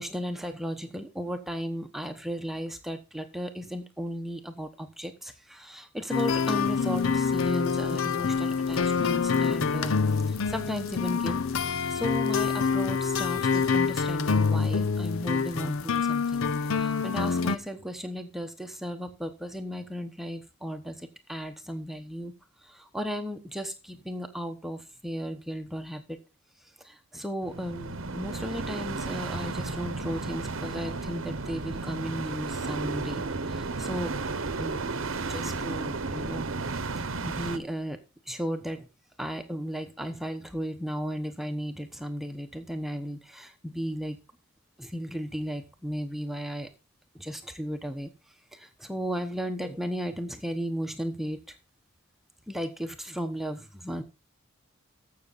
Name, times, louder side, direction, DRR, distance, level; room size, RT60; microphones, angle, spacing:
voice 1, 0.0-9.9 10.3-16.5 16.7-22.3 22.6-26.2 26.8-34.1 34.6-34.9 35.3-36.5 37.0-38.0 38.3-38.9 39.2-44.2 44.8-46.7 47.1-48.1 48.5-51.4 52.5-54.0, equal, ahead, 6 dB, 1.0 m, -35 dB
sound 1, 6.1-17.6, left 5 dB, 70° left, 0.7 m, -26 dB
sound 2, 27.4-37.6, right 3 dB, 70° right, 1.0 m, -33 dB
14.5 x 6.5 x 4.1 m, 0.27 s
head